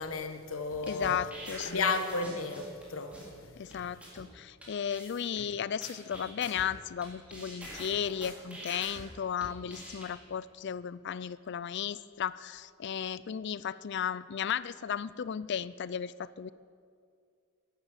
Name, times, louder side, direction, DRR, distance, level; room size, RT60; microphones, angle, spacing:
voice 1, 0.0-1.2 1.6-3.9, left 3 dB, 75° left, 1.2 m, -34 dB
sound 1, 0.7-2.8 3.1-3.3 3.7-3.8 4.0-4.2 4.6-4.7 4.9-5.4 5.8-7.1 7.3-9.0 9.4-10.1, right 1 dB, 5° right, 3.7 m, -45 dB
voice 2, 0.8-1.9 3.6-16.5, left 8 dB, 55° left, 0.4 m, -35 dB
14.0 x 10.5 x 7.2 m
head